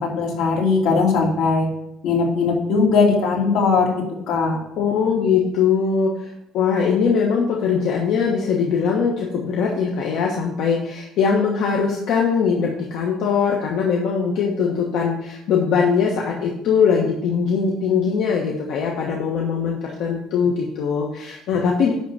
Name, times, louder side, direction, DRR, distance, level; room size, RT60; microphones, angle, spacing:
voice 1, 0.1-1.7 2.0-3.9 4.3-4.6, left 4 dB, 80° left, -2 dB, 2.8 m, -19 dB
voice 2, 4.8-21.9, left 6 dB, 60° left, -1 dB, 1.2 m, -21 dB
11.0 x 3.8 x 7.0 m, 0.78 s
cardioid pair, 170°, 0 cm